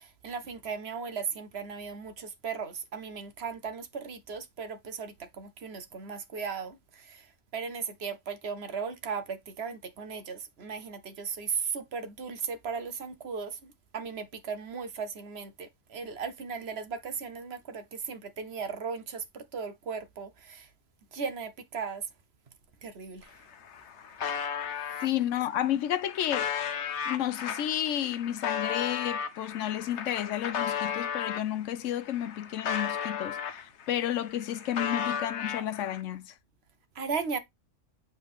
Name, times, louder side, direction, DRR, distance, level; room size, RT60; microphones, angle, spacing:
voice 1, 0.0-7.3 7.5-20.7 21.1-22.1 22.8-23.3 24.9-25.0 36.9-37.4, right 5 dB, 60° right, 1.1 m, -37 dB
sound 1, 23.2-23.3 23.5-25.1 25.7-31.5 32.0-33.9 34.2-36.0, left 8 dB, 70° left, 1.1 m, -34 dB
voice 2, 25.0-26.5 27.1-36.3, left 11 dB, 85° left, 1.0 m, -31 dB
7.6 x 4.1 x 3.5 m
omnidirectional pair, 1.3 m